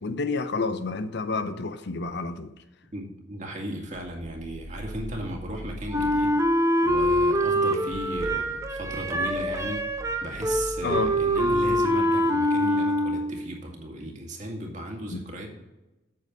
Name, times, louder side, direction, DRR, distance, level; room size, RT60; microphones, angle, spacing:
voice 1, 0.0-2.5 10.8-11.1 15.1-15.2, left 3 dB, 60° left, 0.6 m, -29 dB
voice 2, 2.9-9.9 10.2-15.5, right 1 dB, 40° right, 2.0 m, -36 dB
sound 1, 3.9-6.5 6.9-7.4 7.8-12.1, equal, 85° right, 2.9 m, -41 dB
Wind instrument woodwind instrument, 5.9-13.5, equal, 15° right, 0.8 m, -24 dB
8.6 x 6.5 x 5.2 m
head